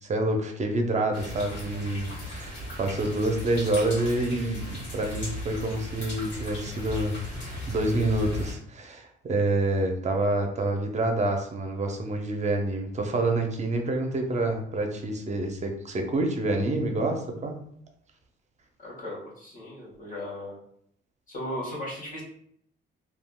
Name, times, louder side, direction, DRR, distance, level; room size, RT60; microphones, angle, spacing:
voice 1, 0.0-17.6, right 2 dB, 35° right, 4 dB, 0.6 m, -27 dB
sound 1, 1.1-8.5, equal, 65° left, 1.4 m, -37 dB
voice 2, 18.8-20.6 21.3-22.2, left 1 dB, 40° left, -5 dB, 1.4 m, -36 dB
3.4 x 2.3 x 2.3 m, 0.69 s
cardioid pair, 90°, 20 cm